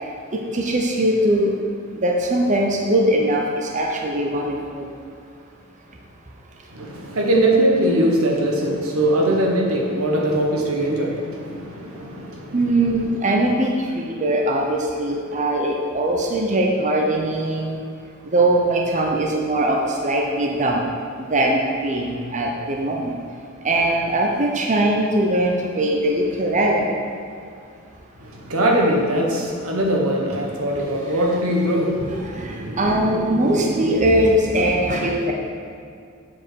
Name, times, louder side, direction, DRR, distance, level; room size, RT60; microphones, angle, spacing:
voice 1, 0.3-1.5 2.0-4.9 12.5-17.8 18.3-20.8 21.3-23.2 23.6-26.9 32.1-35.3, right 1 dB, 35° right, 0 dB, 0.8 m, -21 dB
voice 2, 6.7-12.5 28.2-32.2, right 1 dB, 85° right, 0 dB, 1.4 m, -21 dB
7.5 x 5.0 x 6.3 m, 2.4 s
head